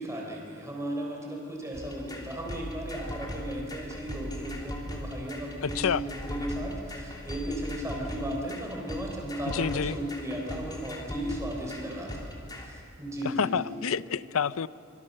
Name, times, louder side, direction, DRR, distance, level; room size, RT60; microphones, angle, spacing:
voice 1, 0.0-13.7, equal, 15° right, 0 dB, 3.9 m, -35 dB
sound 1, 1.7-12.7, equal, 20° left, 3.3 m, -39 dB
voice 2, 5.6-6.0 9.4-10.0 13.2-14.7, left 6 dB, 70° left, 17 dB, 0.5 m, -28 dB
25.5 x 25.0 x 6.6 m, 2.6 s
head